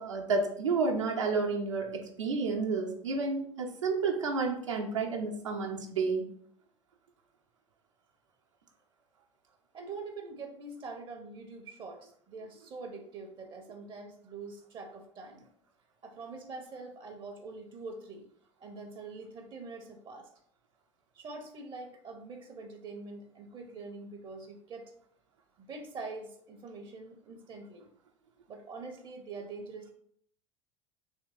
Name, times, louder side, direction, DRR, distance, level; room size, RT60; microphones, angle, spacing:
voice 1, 0.0-6.2, right 4 dB, 75° right, 0 dB, 0.7 m, -30 dB
voice 2, 9.7-15.5 16.0-18.3 18.6-20.3 21.1-24.9 25.6-27.9 28.5-29.9, right 3 dB, 30° right, 4 dB, 0.6 m, -44 dB
3.6 x 3.0 x 3.6 m, 0.65 s
figure-of-eight pair, 75°, 16 cm